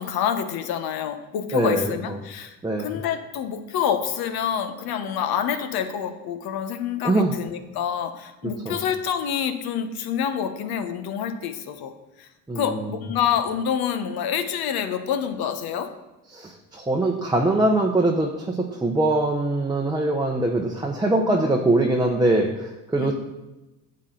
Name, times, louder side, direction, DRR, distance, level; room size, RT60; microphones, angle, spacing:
voice 1, 0.0-11.9 12.2-12.3 12.5-15.9 23.0-23.1, left 8 dB, 60° left, 9 dB, 1.1 m, -27 dB
voice 2, 1.5-2.2 2.6-3.0 7.0-7.4 8.4-8.8 12.5-12.8 16.3-23.1, right 2 dB, 10° right, 0 dB, 0.8 m, -23 dB
8.2 x 7.6 x 3.9 m, 1.0 s
supercardioid pair, 80°, 41 cm